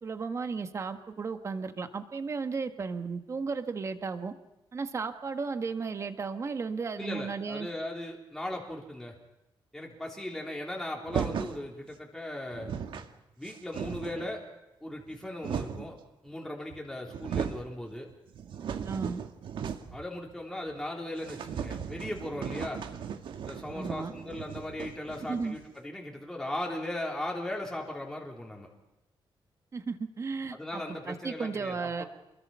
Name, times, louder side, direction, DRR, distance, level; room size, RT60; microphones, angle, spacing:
voice 1, 0.0-4.3 4.7-7.7 18.8-19.2 23.7-24.1 25.2-25.5 29.7-32.0, right 4 dB, 35° right, 8 dB, 1.6 m, -34 dB
voice 2, 7.0-9.1 9.7-12.7 13.4-14.4 14.8-15.9 16.2-18.1 19.9-22.8 23.5-28.7 30.5-32.1, left 1 dB, 5° left, -1 dB, 3.5 m, -38 dB
sound 1, 11.1-11.6 12.3-12.4 12.5-13.1 13.4-14.3 15.0-15.9 16.7-16.8 17.1-17.7 18.1-20.0 20.3-20.4 20.7-20.8 21.2-25.7, right 7 dB, 65° right, 1.8 m, -36 dB
28.0 x 22.0 x 5.6 m, 0.95 s
wide cardioid pair, 170°, 9 cm